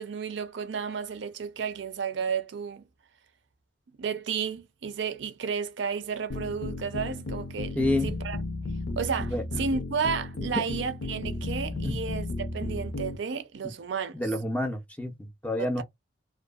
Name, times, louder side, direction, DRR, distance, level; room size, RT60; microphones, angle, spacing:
voice 1, 0.0-2.8 4.0-8.4 9.0-14.1 15.6-15.8, right 6 dB, 70° right, 0.4 m, -32 dB
sound 1, 6.3-13.2, left 2 dB, 85° left, 0.6 m, -34 dB
voice 2, 7.8-8.1 9.3-9.4 11.8-12.0 14.1-15.8, left 1 dB, 5° left, 0.4 m, -28 dB
2.6 x 2.5 x 2.2 m
head